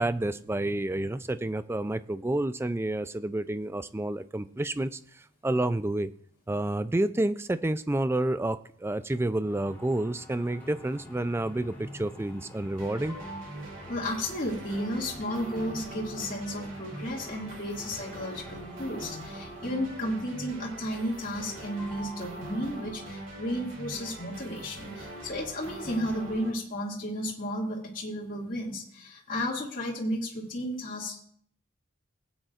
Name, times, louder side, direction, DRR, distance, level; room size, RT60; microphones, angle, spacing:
voice 1, 0.0-6.1 6.5-13.2, right 1 dB, 10° right, 13 dB, 0.3 m, -29 dB
sound 1, 9.1-20.6 21.0-21.5 21.8-23.1, equal, 10° left, 3.0 m, -48 dB
sound 2, 12.8-26.5, right 1 dB, 65° right, 2.7 m, -42 dB
voice 2, 13.9-31.2, equal, 40° left, -4 dB, 2.3 m, -33 dB
18.5 x 9.1 x 2.5 m, 0.63 s
head